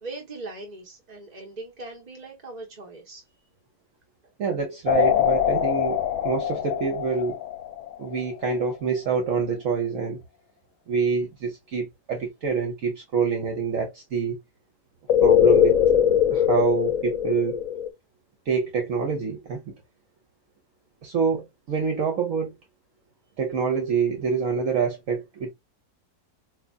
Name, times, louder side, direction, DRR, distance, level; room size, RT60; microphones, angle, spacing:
voice 1, 0.0-3.2, right 2 dB, 30° right, 1.1 m, -40 dB
voice 2, 4.4-7.4 8.0-10.2 10.9-14.4 15.2-15.8 16.3-17.6 18.5-19.7 21.0-22.5 23.4-25.5, right 5 dB, 60° right, 1.2 m, -26 dB
sound 1, 4.9-8.2 15.1-17.9, left 10 dB, 65° left, 1.0 m, -21 dB
4.9 x 2.8 x 2.3 m
omnidirectional pair, 1.6 m